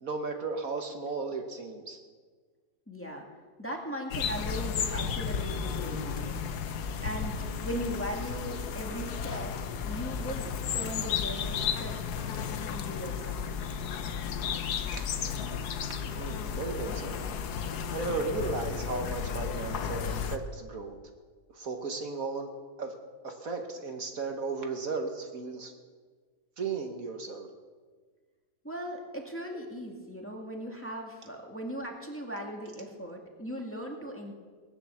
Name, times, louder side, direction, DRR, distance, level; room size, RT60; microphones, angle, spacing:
voice 1, 0.0-2.0 14.9-15.3 16.2-17.2 17.9-21.0 21.5-22.5 22.8-22.9 23.2-25.7 26.6-27.5, right 4 dB, 60° right, 4 dB, 1.6 m, -35 dB
voice 2, 2.9-3.3 3.6-6.4 7.0-9.5 9.8-12.2 12.7-13.6 28.6-34.3, equal, 10° left, 0 dB, 2.0 m, -38 dB
sound 1, 4.1-20.4, left 7 dB, 75° left, 1.4 m, -33 dB
19.0 x 9.8 x 7.1 m, 1.5 s
omnidirectional pair, 1.7 m